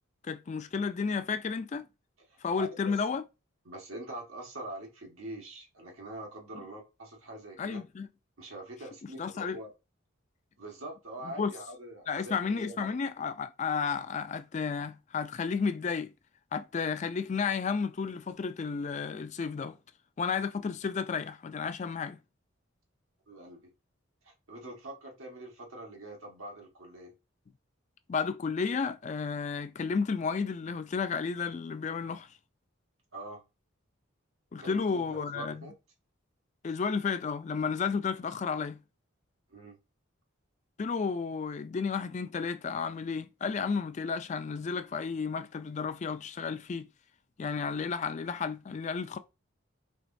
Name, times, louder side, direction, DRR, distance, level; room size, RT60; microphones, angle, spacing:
voice 1, 0.2-1.8 2.4-3.2 7.6-8.1 9.2-9.6 11.2-11.5 12.1-16.1 16.5-19.8 20.2-22.2 28.1-32.3 34.5-35.7 36.6-38.8 40.8-46.9 47.4-49.2, left 5 dB, 35° left, 0.3 m, -32 dB
voice 2, 2.3-2.7 3.6-7.8 8.4-9.7 10.6-12.9 23.3-23.7 24.2-27.1 33.1-33.4 34.6-35.7 39.5-39.8, right 1 dB, 90° right, 1.3 m, -44 dB
4.5 x 3.0 x 2.6 m
head